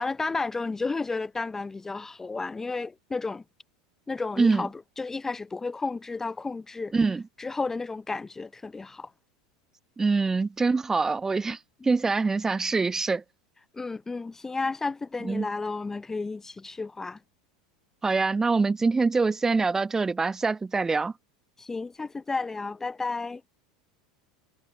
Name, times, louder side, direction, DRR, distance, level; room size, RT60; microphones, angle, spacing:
voice 1, 0.0-3.4 4.1-4.7 5.0-6.9 7.4-9.1 13.7-17.2 21.6-23.4, left 3 dB, 15° left, 0.6 m, -32 dB
voice 2, 6.9-7.2 10.0-11.6 11.8-13.2 15.2-15.5 18.0-21.1, right 4 dB, 15° right, 1.1 m, -24 dB
figure-of-eight pair, 80°, 3 cm